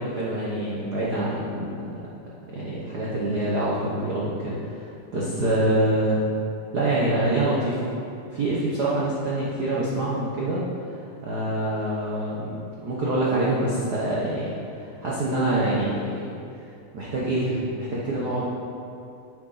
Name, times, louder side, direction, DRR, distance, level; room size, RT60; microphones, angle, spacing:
voice 1, 0.0-1.9 2.5-6.2 6.7-7.8 8.3-10.6 11.2-16.3 16.9-18.4, right 1 dB, 85° right, -6 dB, 0.8 m, -26 dB
9.2 x 7.8 x 4.1 m, 2.5 s
omnidirectional pair, 3.5 m